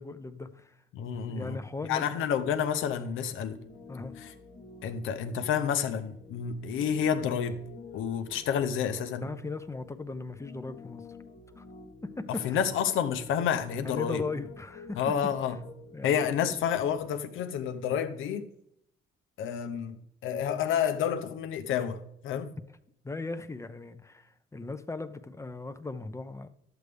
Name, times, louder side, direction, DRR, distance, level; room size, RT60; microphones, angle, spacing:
voice 1, 0.0-0.7 1.3-2.5 3.9-4.1 9.2-11.0 11.6-11.7 12.0-12.6 13.8-15.0 15.9-16.5 23.0-26.5, left 3 dB, 15° left, 0.7 m, -38 dB
voice 2, 0.9-1.6 1.9-3.6 4.2-4.3 4.8-7.6 7.9-9.3 12.4-14.2 14.9-15.6 16.0-18.5 19.4-22.5, left 8 dB, 85° left, 0.9 m, -29 dB
Piano, 3.4-17.1, left 4 dB, 45° left, 1.4 m, -49 dB
11.0 x 8.0 x 3.5 m
cardioid pair, 90°, 20 cm